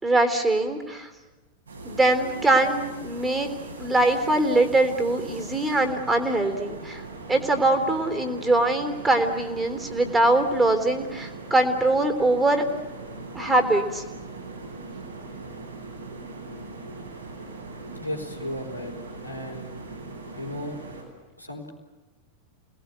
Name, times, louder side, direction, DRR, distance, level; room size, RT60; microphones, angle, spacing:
voice 1, 0.0-1.1 1.8-3.5 3.8-7.0 7.3-12.6 13.3-14.0, right 2 dB, 10° right, 6 dB, 3.5 m, -22 dB
sound 1, 1.7-21.0, right 3 dB, 75° right, 8.0 m, -40 dB
voice 2, 18.0-18.9 19.2-19.7 20.4-20.8 21.4-21.7, left 1 dB, 90° left, 1 dB, 3.9 m, -34 dB
29.0 x 20.0 x 8.3 m, 1.2 s
figure-of-eight pair, 90°, 0 cm